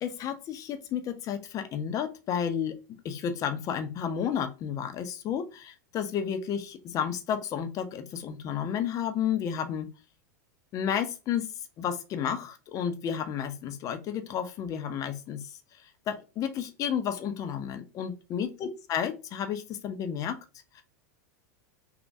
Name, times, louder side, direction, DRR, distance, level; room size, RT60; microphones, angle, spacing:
voice 1, 0.0-2.8 3.0-9.9 10.7-11.5 11.8-15.5 16.1-20.4 20.7-20.8, left 8 dB, 35° left, 8 dB, 0.5 m, -32 dB
3.1 x 2.1 x 2.6 m, 0.30 s
hypercardioid pair, 100°, 9 cm